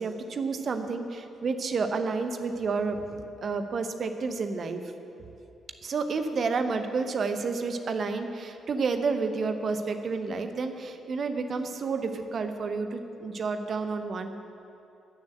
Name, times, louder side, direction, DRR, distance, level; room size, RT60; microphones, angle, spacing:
voice 1, 0.0-4.8 5.8-14.4, right 4 dB, 50° right, 7 dB, 1.0 m, -30 dB
13.0 x 7.1 x 7.8 m, 2.8 s
figure-of-eight pair, 40°, 0 cm